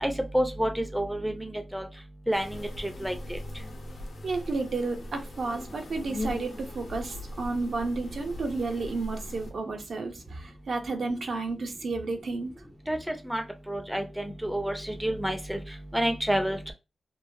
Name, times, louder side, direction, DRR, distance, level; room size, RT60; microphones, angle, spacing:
voice 1, 0.0-1.3 1.7-1.8 2.3-2.4 3.0-3.1 12.9-13.0 13.3-13.4 13.7-14.7 15.0-15.6 15.9-16.7, equal, 5° right, 0.4 m, -28 dB
sound 1, 2.3-9.5, left 1 dB, 85° left, 0.8 m, -40 dB
voice 2, 4.2-12.5, right 3 dB, 65° right, 0.5 m, -32 dB
3.0 x 2.1 x 2.6 m
wide cardioid pair, 120°, 0 cm